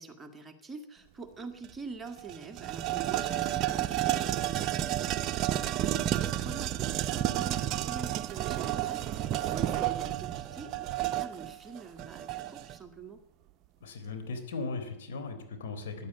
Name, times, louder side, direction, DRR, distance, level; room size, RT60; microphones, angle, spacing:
voice 1, 0.0-13.2, right 4 dB, 15° right, 5 dB, 1.7 m, -45 dB
sound 1, 1.6-1.7 2.1-12.8, right 12 dB, 40° right, 0.7 m, -31 dB
voice 2, 13.8-16.1, left 3 dB, 75° left, 7 dB, 3.6 m, -38 dB
13.5 x 11.0 x 8.9 m, 0.86 s
hypercardioid pair, 125°, 0 cm